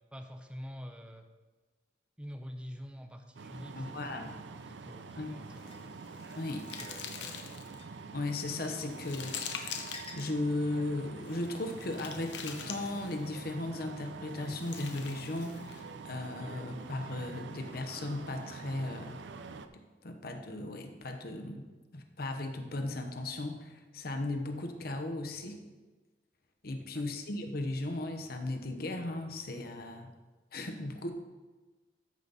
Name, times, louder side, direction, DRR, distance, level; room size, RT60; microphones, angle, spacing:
voice 1, 0.1-1.3 2.2-6.0 6.8-7.6 26.8-27.0, equal, 5° right, 5 dB, 0.6 m, -47 dB
sound 1, 3.4-19.7, right 4 dB, 85° right, 0.6 m, -46 dB
voice 2, 3.7-4.3 5.2-5.4 6.4-6.6 8.1-19.2 20.0-21.6 21.9-25.6 26.6-30.1 30.5-31.1, left 2 dB, 60° left, 5 dB, 1.0 m, -36 dB
sound 2, 5.5-7.8 8.3-10.3 11.2-13.3 14.3-15.9, left 7 dB, 85° left, 0.9 m, -44 dB
sound 3, 5.7-5.8 6.7-6.9 7.8-7.9 9.0-9.1 9.9-10.3, left 2 dB, 35° left, 1.1 m, -48 dB
13.5 x 5.2 x 4.1 m, 1.3 s
head